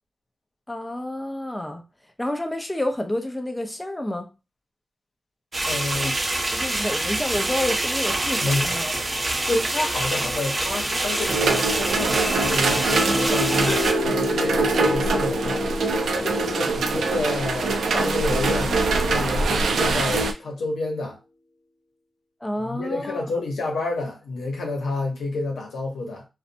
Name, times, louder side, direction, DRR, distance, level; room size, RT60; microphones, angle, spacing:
voice 1, 0.7-1.8 2.2-4.3 6.0-6.2 6.5-8.9 22.4-23.3, left 1 dB, 15° left, 0.6 m, -29 dB
sound 1, 5.5-13.9, right 2 dB, 40° right, 0.6 m, -26 dB
voice 2, 5.7-6.2 8.4-8.8 9.4-15.7 16.1-21.2 22.6-26.3, left 2 dB, 85° left, 0.7 m, -29 dB
sound 2, 11.2-20.3, right 3 dB, 85° right, 0.3 m, -24 dB
sound 3, 12.3-19.9, left 2 dB, 50° left, 1.0 m, -30 dB
2.6 x 2.1 x 2.5 m
cardioid pair, 45°, 0 cm